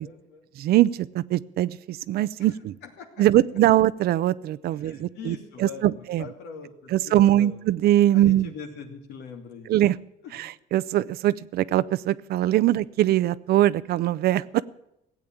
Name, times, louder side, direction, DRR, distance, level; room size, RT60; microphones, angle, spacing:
voice 1, 0.0-0.5 2.4-2.5 2.8-3.3 4.7-7.6 8.1-9.7 10.2-10.4, left 5 dB, 80° left, 2.6 m, -42 dB
voice 2, 0.6-2.8 3.2-6.3 6.9-8.5 9.7-10.0 10.3-14.6, right 13 dB, 65° right, 0.6 m, -22 dB
16.5 x 8.5 x 8.9 m
cardioid pair, 110°, 17 cm